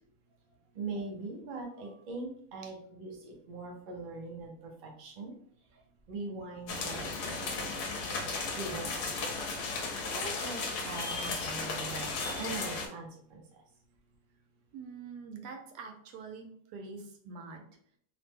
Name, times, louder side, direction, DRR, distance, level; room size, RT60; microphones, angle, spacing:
voice 1, 0.7-5.3 6.1-8.1 8.6-9.2 10.1-13.4, right 3 dB, 55° right, 0 dB, 0.5 m, -42 dB
sound 1, 6.7-12.9, left 3 dB, 80° left, 1.2 m, -35 dB
voice 2, 14.7-17.7, right 4 dB, 90° right, 4 dB, 1.2 m, -45 dB
3.0 x 2.1 x 3.3 m, 0.64 s
omnidirectional pair, 1.7 m